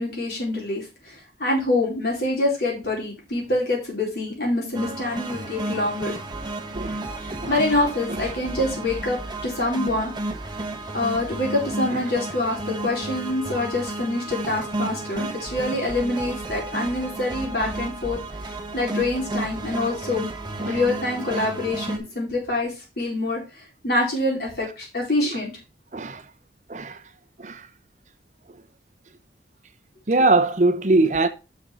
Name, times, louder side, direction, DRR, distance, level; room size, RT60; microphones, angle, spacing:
voice 1, 0.0-6.1 7.2-10.1 10.9-18.2 18.7-20.3 20.7-25.5, left 2 dB, 60° left, 4.4 m, -26 dB
sound 1, 4.7-22.0, right 2 dB, 25° right, 1.1 m, -32 dB
voice 2, 30.1-31.3, right 2 dB, 45° right, 0.7 m, -21 dB
6.4 x 6.3 x 4.9 m
head